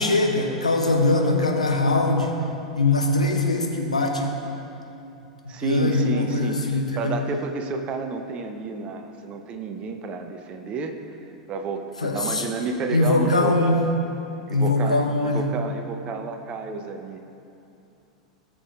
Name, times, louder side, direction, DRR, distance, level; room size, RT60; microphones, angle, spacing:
voice 1, 0.0-2.4 2.7-4.4 5.6-7.2 12.0-12.4 12.9-13.9 14.5-15.5, left 2 dB, 80° left, 2 dB, 1.2 m, -22 dB
voice 2, 5.5-6.6 7.0-11.2 11.5-13.6 14.5-17.3, right 4 dB, 30° right, 5 dB, 0.9 m, -31 dB
18.0 x 6.4 x 3.7 m, 2.8 s
figure-of-eight pair, 90°, 4 cm